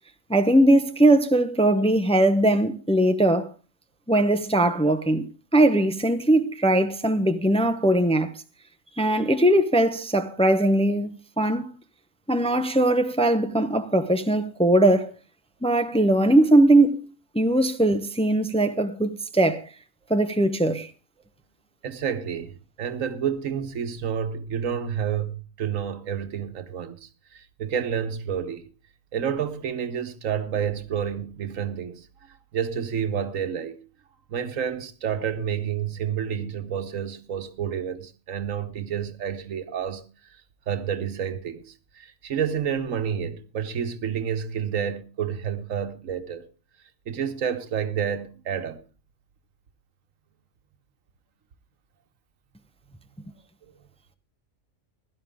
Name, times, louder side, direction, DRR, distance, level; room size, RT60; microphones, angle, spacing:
voice 1, 0.3-3.5 4.1-5.2 5.5-8.3 9.0-11.7 12.3-15.1 15.6-19.6 20.1-20.9, right 1 dB, 5° left, 0.6 m, -20 dB
voice 2, 21.8-28.6 29.1-32.1 32.5-33.8 34.3-40.0 40.7-46.5 47.1-48.8, right 8 dB, 85° right, 1.5 m, -29 dB
16.5 x 12.0 x 3.6 m
omnidirectional pair, 1.3 m